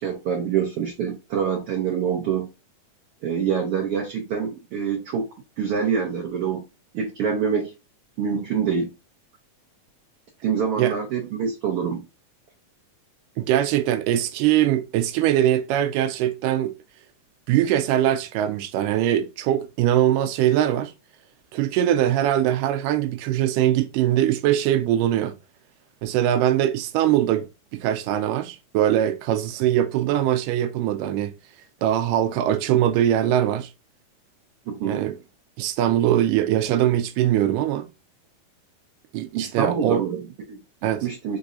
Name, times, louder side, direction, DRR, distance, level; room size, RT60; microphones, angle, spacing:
voice 1, 0.0-2.5 3.2-5.3 5.6-6.6 6.9-7.7 8.2-8.9 10.4-12.1 34.7-35.0 39.3-41.4, right 7 dB, 70° right, 1.5 m, -26 dB
voice 2, 13.4-16.7 17.5-20.9 21.5-25.4 26.0-31.3 31.8-33.7 34.8-35.2 35.6-37.9 39.1-40.0 40.8-41.1, right 11 dB, 90° right, 2.2 m, -22 dB
5.3 x 4.1 x 2.4 m
omnidirectional pair, 3.7 m